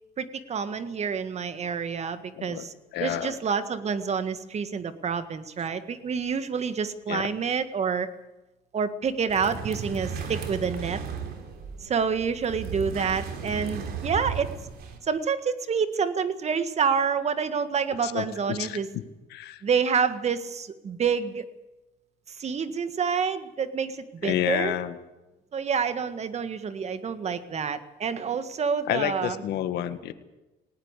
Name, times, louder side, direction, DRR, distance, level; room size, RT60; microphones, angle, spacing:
voice 1, 0.2-2.7 3.0-8.1 8.7-11.0 11.8-14.5 15.1-18.9 19.6-21.4 22.3-24.7 25.5-29.4, right 6 dB, 40° right, 11 dB, 1.8 m, -28 dB
voice 2, 2.3-2.6 2.9-3.4 7.1-7.3 18.0-19.0 19.3-19.6 24.2-25.0 28.9-30.1, left 11 dB, 80° left, 10 dB, 1.7 m, -29 dB
sound 1, 9.3-15.0, right 6 dB, 65° right, 3.8 m, -35 dB
19.0 x 18.5 x 8.3 m, 1.0 s
cardioid pair, 110°, 17 cm